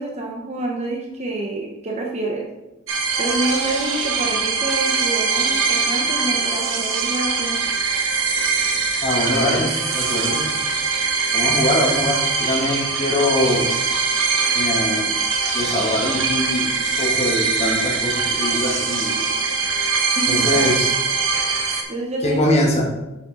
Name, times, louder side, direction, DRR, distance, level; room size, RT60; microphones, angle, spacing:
voice 1, 0.0-2.5 3.2-7.6 20.1-20.7 21.9-22.4, right 2 dB, 35° right, -1 dB, 0.8 m, -27 dB
sound 1, 2.9-21.8, right 4 dB, 70° right, 1.0 m, -22 dB
voice 2, 9.0-9.7 9.9-10.4 11.3-13.7 14.5-15.1 15.5-16.7 17.0-19.3 20.3-20.9 22.2-22.9, left 1 dB, 35° left, -1 dB, 1.2 m, -22 dB
6.9 x 5.2 x 3.7 m, 1.0 s
head